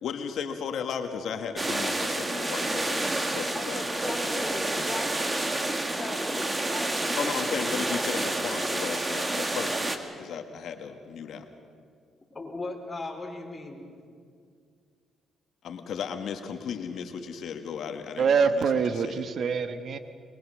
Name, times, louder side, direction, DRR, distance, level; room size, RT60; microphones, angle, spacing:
voice 1, 0.0-3.8 4.1-4.2 4.6-4.7 7.2-11.5 15.6-18.6 19.0-19.2, left 7 dB, 70° left, 6 dB, 1.6 m, -35 dB
sound 1, 1.6-10.0, right 2 dB, 20° right, 1.9 m, -29 dB
voice 2, 3.5-5.2 5.8-7.3 12.3-13.8, left 2 dB, 25° left, 1 dB, 4.4 m, -38 dB
voice 3, 18.2-20.0, right 5 dB, 55° right, 9 dB, 1.2 m, -25 dB
23.0 x 22.0 x 6.4 m, 2.2 s
cardioid pair, 90°, 0 cm